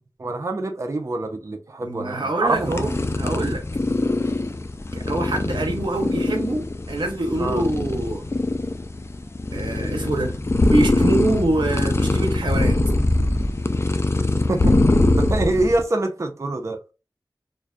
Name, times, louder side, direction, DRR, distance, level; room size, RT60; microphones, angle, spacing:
voice 1, 0.2-2.9 7.4-7.6 14.5-14.8 15.2-16.8, right 2 dB, 40° right, 0.4 m, -25 dB
voice 2, 1.8-3.6 4.9-8.3 9.5-10.4 10.7-12.8, right 2 dB, 85° right, 0.6 m, -25 dB
sound 1, 2.5-15.8, left 2 dB, 35° left, 0.3 m, -22 dB
2.5 x 2.2 x 2.2 m
wide cardioid pair, 50°, 8 cm